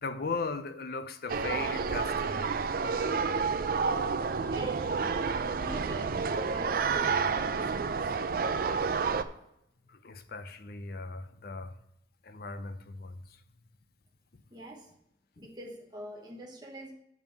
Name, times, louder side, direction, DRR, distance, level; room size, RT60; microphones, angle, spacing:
voice 1, 0.0-2.5 9.9-11.7 12.2-13.2, left 4 dB, 55° left, 0.6 m, -38 dB
sound 1, 1.3-9.2, right 5 dB, 50° right, 0.4 m, -30 dB
voice 2, 4.5-7.9 14.5-14.9 15.4-16.9, right 1 dB, 25° right, 0.9 m, -44 dB
7.2 x 5.3 x 5.9 m
head